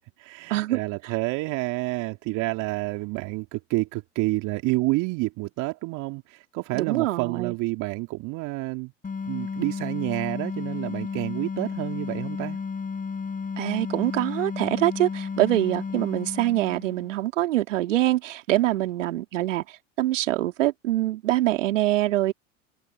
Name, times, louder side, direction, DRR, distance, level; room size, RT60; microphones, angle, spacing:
voice 1, 0.2-8.9 9.3-12.6, right 24 dB, 50° right, 2.5 m, -29 dB
voice 2, 6.7-7.5 13.6-19.6 20.0-22.3, right 15 dB, 70° right, 3.3 m, -24 dB
sound 1, 9.0-17.2, left 5 dB, 20° left, 7.4 m, -33 dB
hypercardioid pair, 85°, 38 cm